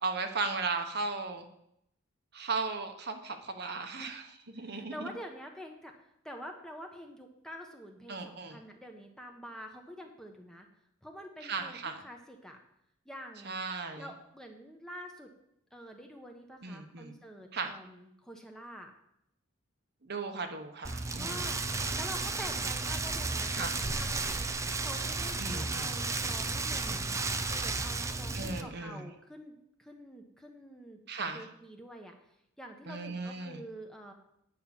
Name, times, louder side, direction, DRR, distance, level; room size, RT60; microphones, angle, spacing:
voice 1, 0.0-1.4 2.3-4.2 4.6-5.1 8.1-8.6 11.4-12.0 13.4-14.1 16.6-17.1 17.5-17.8 20.0-21.5 23.5-23.8 25.4-25.9 28.3-29.1 31.1-31.4 32.9-33.6, right 4 dB, 50° right, 5 dB, 1.0 m, -36 dB
voice 2, 4.6-5.9 6.2-10.7 11.0-12.6 13.0-13.6 13.9-15.3 15.7-18.9 21.2-21.6 22.0-24.5 24.8-31.0 31.3-32.1 32.6-34.1, equal, 5° left, 2 dB, 1.0 m, -47 dB
Rain, 20.8-28.6, right 3 dB, 15° right, 0.4 m, -33 dB
9.5 x 5.6 x 7.1 m, 0.76 s
head